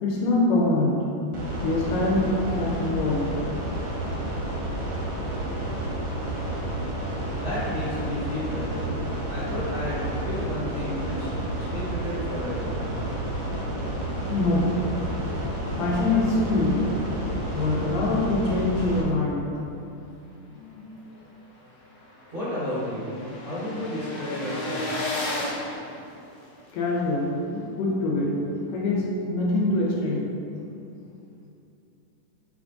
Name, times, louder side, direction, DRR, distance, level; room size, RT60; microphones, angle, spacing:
voice 1, 0.0-1.1 1.6-3.4 14.3-14.8 15.8-19.5 20.5-20.8 25.9-26.0 26.7-30.3, left 2 dB, 80° left, -4 dB, 2.6 m, -25 dB
sound 1, 1.3-19.0, right 1 dB, 60° right, 1.3 m, -30 dB
voice 2, 7.4-8.9 9.3-11.3 11.7-12.7 22.3-23.1 23.4-24.9, left 1 dB, 75° right, -13 dB, 0.5 m, -32 dB
sound 2, 21.1-21.2 21.6-21.7 21.8-26.7, left 1 dB, 65° left, 1.4 m, -34 dB
6.6 x 3.7 x 3.8 m, 2.6 s
omnidirectional pair, 3.8 m